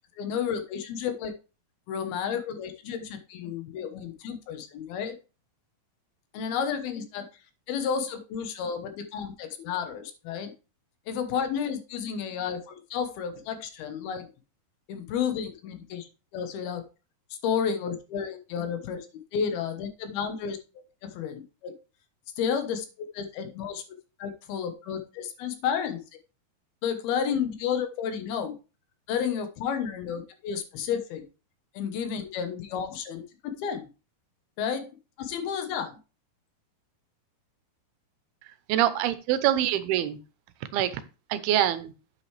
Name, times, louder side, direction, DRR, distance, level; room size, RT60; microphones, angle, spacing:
voice 1, 0.2-1.3 1.9-5.2 6.3-7.3 7.7-10.5 11.1-14.3 14.9-16.8 17.4-20.6 21.0-21.7 22.4-23.8 24.2-26.0 26.8-28.6 29.1-31.2 31.7-33.2 33.6-33.9 34.6-34.9 35.2-36.0, left 7 dB, 80° left, 7 dB, 3.0 m, -31 dB
voice 2, 38.7-40.2 40.7-40.9 41.3-41.9, right 12 dB, 85° right, 12 dB, 2.7 m, -24 dB
9.0 x 7.7 x 3.3 m, 0.32 s
omnidirectional pair, 4.4 m